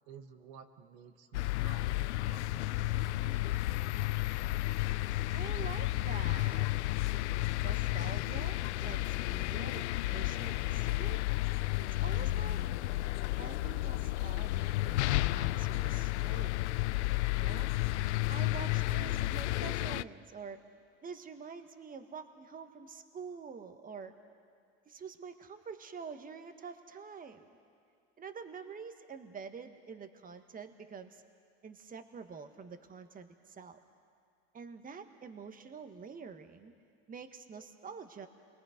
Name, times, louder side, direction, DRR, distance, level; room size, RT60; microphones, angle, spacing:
voice 1, 0.1-4.4 18.9-19.4, right 7 dB, 70° right, 7 dB, 1.4 m, -54 dB
sound 1, 1.3-20.0, left 17 dB, 85° left, 0.5 m, -32 dB
voice 2, 5.3-6.7 7.6-11.3 11.8-12.6 13.4-17.1 17.3-17.7 18.3-20.6 21.0-24.2 24.9-27.5 28.2-31.2 31.6-33.8 34.5-36.7 37.1-38.3, right 5 dB, 25° right, 8 dB, 1.5 m, -47 dB
28.0 x 22.0 x 5.2 m, 2.2 s
hypercardioid pair, 90°, 33 cm